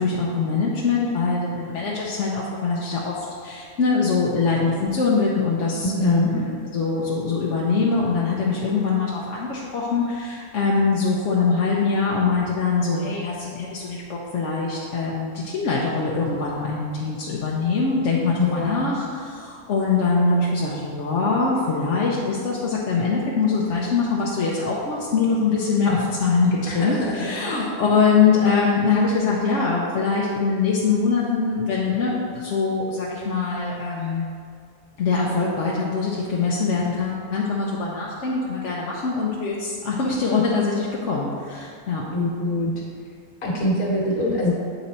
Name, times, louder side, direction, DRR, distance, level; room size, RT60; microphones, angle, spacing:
voice 1, 0.0-34.3 35.0-42.0, left 4 dB, 60° left, -5 dB, 1.0 m, -23 dB
voice 2, 5.8-6.3 18.4-19.0 26.7-27.7 42.1-42.7 43.4-44.5, left 2 dB, 80° left, -4 dB, 1.9 m, -24 dB
8.1 x 4.0 x 4.2 m, 2.2 s
omnidirectional pair, 1.5 m